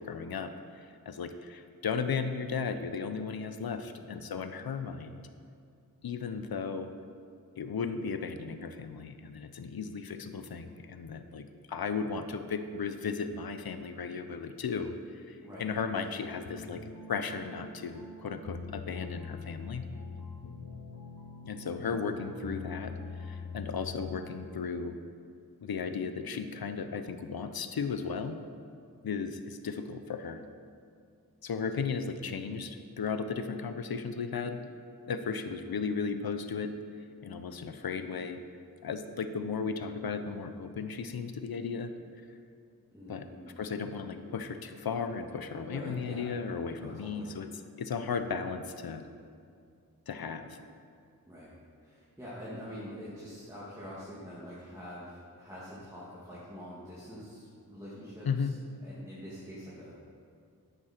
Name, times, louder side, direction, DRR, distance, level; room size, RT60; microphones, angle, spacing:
voice 1, 0.1-5.3 6.0-7.0 7.6-19.9 21.5-25.0 25.6-28.4 29.0-30.5 31.4-34.6 35.1-36.8 37.2-38.4 38.8-42.0 43.1-43.3 43.6-47.5 47.8-49.1 50.1-50.6 58.2-58.5, left 5 dB, 75° left, 9 dB, 0.7 m, -35 dB
voice 2, 15.4-15.9 21.8-22.1 32.2-32.5 42.9-43.6 45.7-46.3 46.7-47.4 51.3-51.5 51.8-60.0, equal, 10° right, -9 dB, 2.4 m, -45 dB
sound 1, 16.4-24.5, left 4 dB, 55° left, 1.1 m, -44 dB
11.0 x 8.8 x 4.4 m, 2.3 s
wide cardioid pair, 75°, 37 cm